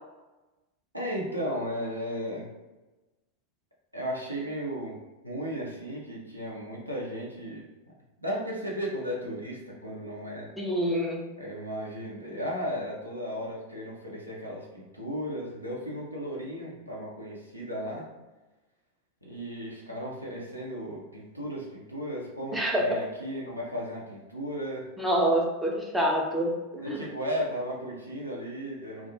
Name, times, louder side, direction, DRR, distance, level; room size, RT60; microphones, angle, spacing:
voice 1, 0.9-2.5 3.9-7.7 8.2-10.5 11.4-18.0 19.2-24.9 26.7-29.1, equal, 90° right, -4 dB, 0.6 m, -35 dB
voice 2, 10.6-11.2 22.5-23.0 25.0-27.0, equal, 5° right, -1 dB, 0.4 m, -27 dB
2.2 x 2.1 x 2.7 m, 1.1 s
figure-of-eight pair, 90°, 0 cm